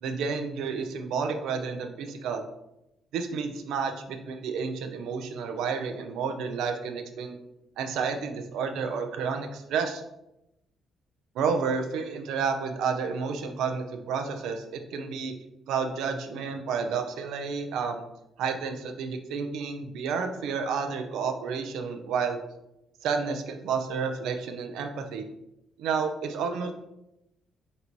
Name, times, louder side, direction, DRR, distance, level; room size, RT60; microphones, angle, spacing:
voice 1, 0.0-2.4 3.1-7.4 7.8-10.0 11.3-15.3 15.7-18.0 18.4-22.4 23.0-25.3 25.8-26.7, right 5 dB, 85° right, 6 dB, 0.5 m, -30 dB
4.1 x 2.7 x 4.4 m, 0.87 s
cardioid pair, 90°, 0 cm